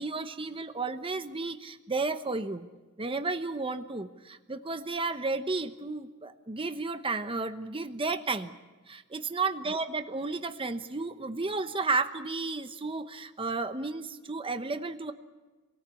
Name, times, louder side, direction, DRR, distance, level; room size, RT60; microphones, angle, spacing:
voice 1, 0.0-2.7 3.0-8.6 8.9-15.1, right 3 dB, 25° right, 9 dB, 1.0 m, -33 dB
27.0 x 19.0 x 8.4 m, 1.3 s
head